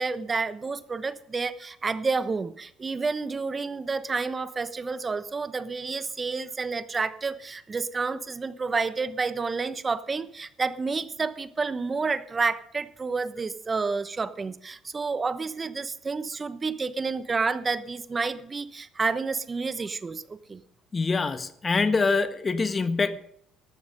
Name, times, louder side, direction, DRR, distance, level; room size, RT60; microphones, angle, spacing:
voice 1, 0.0-20.6, right 4 dB, 30° right, 13 dB, 1.0 m, -30 dB
voice 2, 20.9-23.2, left 4 dB, 30° left, 10 dB, 1.4 m, -25 dB
13.5 x 12.0 x 5.3 m, 0.65 s
supercardioid pair, 70°, 0 cm